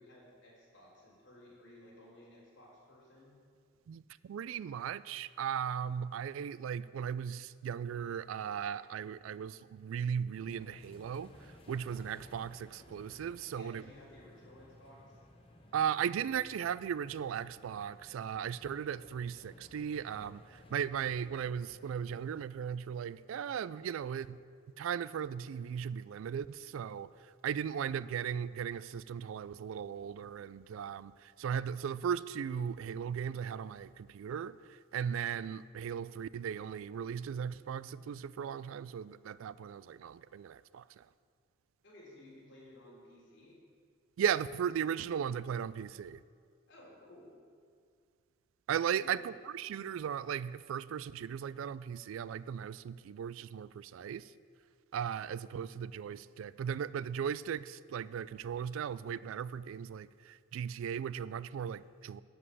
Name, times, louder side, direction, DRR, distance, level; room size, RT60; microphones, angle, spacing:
voice 1, 0.0-3.3 13.5-15.2 41.8-43.6 46.7-47.4 48.9-49.2, left 1 dB, 60° left, -5 dB, 3.3 m, -56 dB
voice 2, 3.9-13.8 15.7-24.4 24.8-41.1 44.2-46.2 48.7-54.3 54.9-62.2, right 8 dB, 85° right, 18 dB, 0.3 m, -37 dB
sound 1, 10.3-22.5, left 1 dB, 25° left, 0.8 m, -57 dB
11.0 x 5.3 x 8.0 m, 2.2 s
head